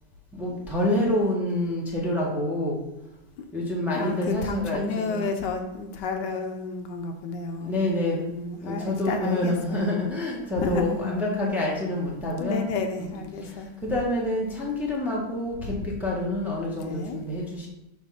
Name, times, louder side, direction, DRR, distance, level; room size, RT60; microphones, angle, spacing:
voice 1, 0.3-2.8 3.5-5.3 7.6-8.2 8.6-12.6 13.0-13.2 13.4-17.7, left 1 dB, ahead, -3 dB, 1.0 m, -27 dB
voice 2, 3.9-7.7 8.2-9.9 10.6-11.2 12.4-13.7 16.8-17.2, left 4 dB, 75° left, 5 dB, 1.3 m, -31 dB
6.1 x 3.3 x 5.7 m, 0.92 s
omnidirectional pair, 1.9 m